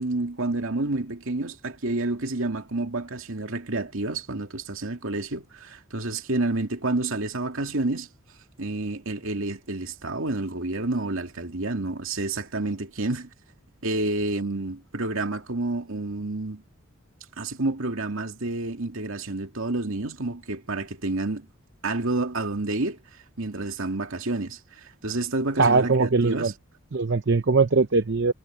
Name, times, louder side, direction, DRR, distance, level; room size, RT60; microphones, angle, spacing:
voice 1, 0.0-8.1 8.6-13.3 13.8-16.6 17.4-21.5 21.8-23.0 23.4-26.5, right 2 dB, 70° right, 2.4 m, -29 dB
voice 2, 25.6-26.5 26.9-28.3, right 4 dB, 55° right, 0.7 m, -21 dB
head